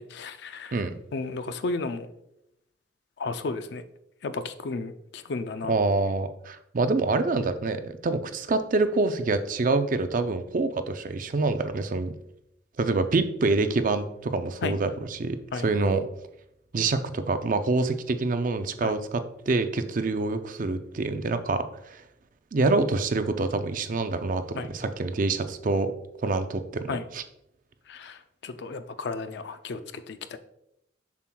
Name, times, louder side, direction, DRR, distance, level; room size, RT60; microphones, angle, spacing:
voice 1, 0.0-0.8 1.1-2.1 3.2-3.8 4.2-5.7 14.6-14.8 15.5-15.6 18.8-18.9 24.6-24.7 26.9-27.0 27.9-28.2 28.4-29.8 30.1-30.4, left 3 dB, 60° left, 10 dB, 0.4 m, -33 dB
voice 2, 5.7-12.1 12.8-16.0 16.7-22.0 22.5-25.9 26.2-27.2, right 3 dB, 45° right, 9 dB, 0.4 m, -26 dB
7.0 x 6.0 x 2.3 m, 0.80 s
head